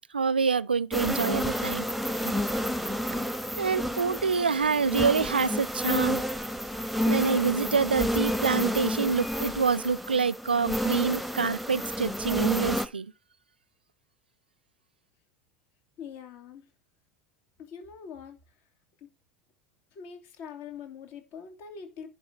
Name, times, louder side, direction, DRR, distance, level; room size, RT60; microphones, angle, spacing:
voice 1, 0.1-1.9 2.3-2.4 3.6-6.2 7.1-13.1, right 5 dB, 85° right, 0.4 m, -26 dB
sound 1, 0.9-12.9, equal, ahead, 1.1 m, -30 dB
voice 2, 16.0-16.6 17.6-18.4 19.9-22.1, left 7 dB, 50° left, 2.8 m, -43 dB
10.5 x 4.5 x 6.2 m
figure-of-eight pair, 80°, 5 cm